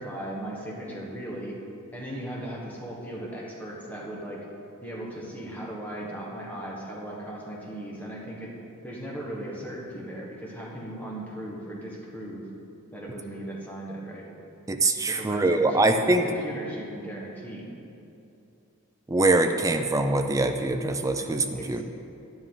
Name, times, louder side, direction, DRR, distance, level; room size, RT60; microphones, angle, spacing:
voice 1, 0.0-1.5 1.9-4.4 4.8-8.5 8.8-12.5 12.9-14.3 15.1-17.7 21.2-21.8, right 1 dB, 5° left, -4 dB, 1.3 m, -37 dB
voice 2, 14.7-16.2 19.1-21.8, right 2 dB, 15° right, 6 dB, 0.4 m, -23 dB
11.0 x 10.5 x 3.8 m, 2.8 s
head